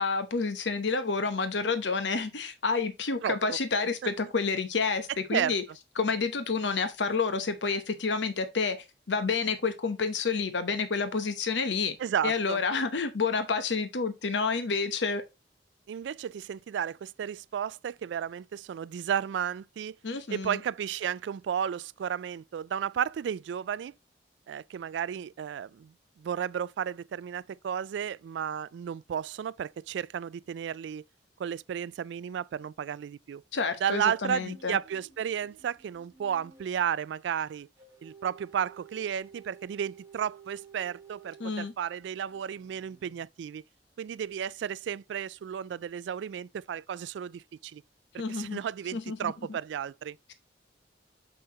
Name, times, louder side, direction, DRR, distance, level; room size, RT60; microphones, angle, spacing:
voice 1, 0.0-5.6 6.0-8.8 9.1-11.9 12.2-15.2 20.0-20.6 33.5-34.8 41.4-41.7 48.2-48.6 48.9-49.3, left 4 dB, 90° left, 0.9 m, -29 dB
voice 2, 12.0-12.6 15.9-20.0 20.3-23.9 24.5-31.0 31.4-33.4 33.8-37.7 38.0-43.6 44.0-47.8 48.1-50.2, right 8 dB, 80° right, 0.3 m, -33 dB
sound 1, 34.5-36.7 37.8-41.6 42.3-43.2, right 6 dB, 15° right, 1.9 m, -53 dB
6.7 x 5.6 x 2.9 m
head